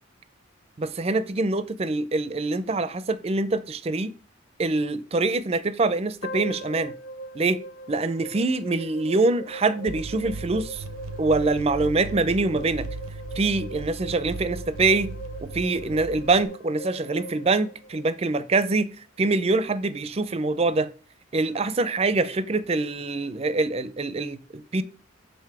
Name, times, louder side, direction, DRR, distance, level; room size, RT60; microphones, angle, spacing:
voice 1, 0.8-4.1 4.6-6.9 7.3-7.6 7.9-10.8 11.2-12.9 13.4-15.1 15.4-18.9 19.2-20.9 21.3-24.8, right 3 dB, 30° right, 0.4 m, -24 dB
sound 1, 6.2-18.4, right 1 dB, 45° left, 0.6 m, -40 dB
sound 2, 9.9-16.5, right 2 dB, 85° right, 0.6 m, -37 dB
6.6 x 3.9 x 4.7 m
head